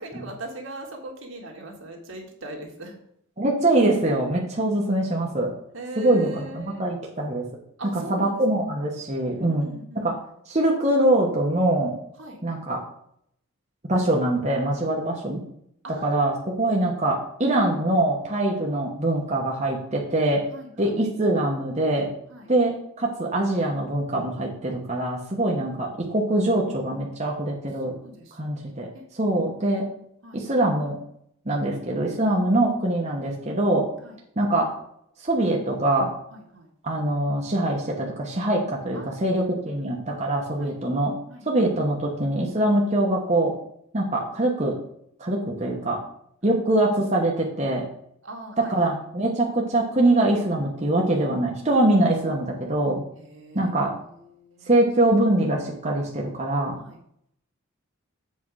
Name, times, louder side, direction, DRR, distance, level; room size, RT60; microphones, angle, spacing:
voice 1, 0.0-3.0 5.7-6.9 7.8-8.4 9.3-10.1 12.2-12.4 15.8-16.5 20.5-20.9 22.3-22.5 27.9-28.5 28.9-29.1 30.2-30.5 34.0-34.2 36.3-36.7 38.9-40.0 40.6-40.8 41.3-41.5 48.2-49.0 53.2-54.7 56.8-57.0, right 1 dB, 70° right, 1 dB, 1.9 m, -41 dB
voice 2, 3.4-5.5 6.0-7.5 8.1-10.2 10.5-11.9 12.4-12.8 13.9-15.4 16.0-20.4 20.8-22.1 22.5-27.9 28.4-28.9 29.1-29.9 30.3-31.0 31.5-33.9 34.4-34.7 35.2-36.1 36.8-41.1 41.4-43.5 43.9-44.8 45.2-46.0 46.4-47.9 48.6-53.0 53.5-53.9 54.7-56.8, right 1 dB, 35° right, -2 dB, 1.1 m, -23 dB
7.6 x 4.6 x 6.2 m, 0.70 s
head